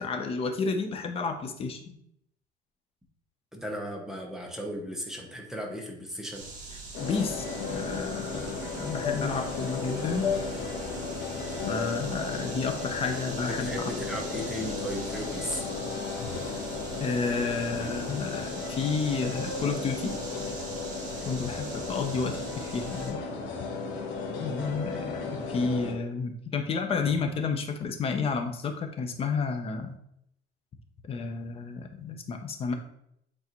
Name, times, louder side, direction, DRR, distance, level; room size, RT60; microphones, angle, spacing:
voice 1, 0.0-2.0 7.0-10.4 11.7-13.9 17.0-20.2 21.3-23.2 24.4-29.9 31.1-32.7, left 5 dB, 30° left, 6 dB, 0.7 m, -31 dB
voice 2, 3.5-6.5 9.3-9.5 13.4-15.6 16.0-16.2 23.3-23.6 24.9-25.0, equal, ahead, 0 dB, 0.8 m, -36 dB
sound 1, 6.3-23.1, right 3 dB, 40° right, 1.8 m, -42 dB
sound 2, 6.9-25.9, left 4 dB, 70° left, 1.5 m, -35 dB
8.3 x 3.9 x 3.0 m, 0.74 s
cardioid pair, 160°, 20 cm